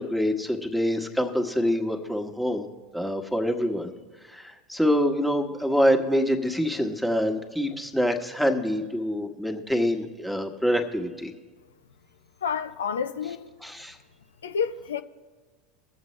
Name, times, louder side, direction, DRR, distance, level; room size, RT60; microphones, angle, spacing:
voice 1, 0.0-2.7 2.9-3.9 4.3-11.3 13.6-14.0, equal, ahead, 1.3 m, -25 dB
voice 2, 12.4-13.5 14.4-15.0, left 6 dB, 85° left, 0.5 m, -29 dB
21.5 x 7.4 x 3.2 m
hypercardioid pair, 85°, 0 cm